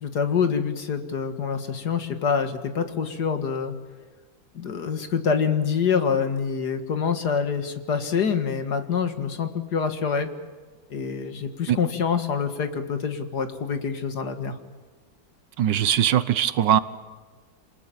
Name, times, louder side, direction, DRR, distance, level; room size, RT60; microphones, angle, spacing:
voice 1, 0.0-3.8 4.5-10.3 10.9-14.6, left 6 dB, 55° left, 9 dB, 2.3 m, -26 dB
voice 2, 15.6-16.8, right 10 dB, 70° right, 15 dB, 1.5 m, -20 dB
27.0 x 20.0 x 8.7 m, 1.4 s
omnidirectional pair, 2.1 m